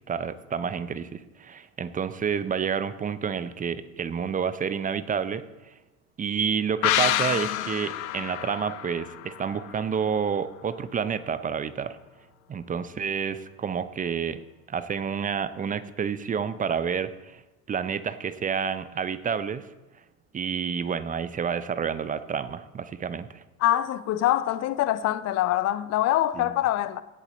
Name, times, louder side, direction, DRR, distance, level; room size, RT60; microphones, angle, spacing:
voice 1, 0.0-5.4 6.2-12.0 12.5-14.4 14.7-17.4 17.7-19.7 20.3-23.4 26.3-26.5, right 7 dB, 20° right, 0.6 m, -29 dB
sound 1, 6.8-10.3 10.6-10.7, left 14 dB, 65° left, 0.9 m, -28 dB
voice 2, 23.6-27.0, left 13 dB, 35° left, 0.7 m, -24 dB
16.5 x 7.1 x 4.0 m
figure-of-eight pair, 75°, 44 cm